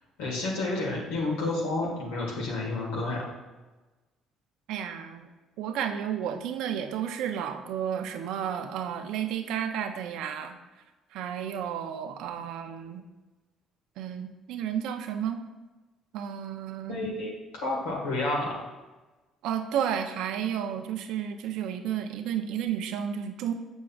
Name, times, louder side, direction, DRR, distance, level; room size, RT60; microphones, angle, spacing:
voice 1, 0.2-3.2 16.9-18.6, left 2 dB, 90° left, -3 dB, 1.7 m, -30 dB
voice 2, 4.7-5.2 5.6-10.5 11.1-13.0 14.0-15.4 16.1-17.0 19.4-23.5, right 9 dB, 75° right, 7 dB, 0.5 m, -32 dB
7.3 x 6.2 x 2.4 m, 1.2 s
supercardioid pair, 70°, 0 cm